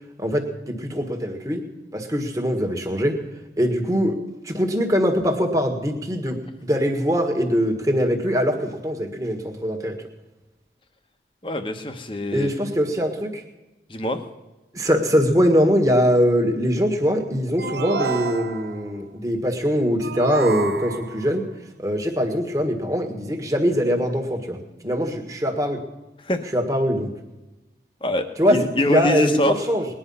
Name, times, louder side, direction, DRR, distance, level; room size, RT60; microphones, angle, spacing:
voice 1, 0.2-1.6 1.9-3.1 3.6-4.2 4.4-10.0 12.3-13.4 14.7-21.4 21.8-24.6 24.8-25.8 26.5-27.1 28.4-28.6 28.9-29.9, equal, 20° right, 3 dB, 1.6 m, -22 dB
voice 2, 11.4-12.5 13.9-14.2 26.2-26.4 28.0-29.6, left 1 dB, 30° left, 7 dB, 1.1 m, -24 dB
sound 1, 17.6-18.9 20.0-21.3, right 5 dB, 85° right, 0.9 m, -29 dB
20.0 x 10.0 x 5.6 m, 1.1 s
head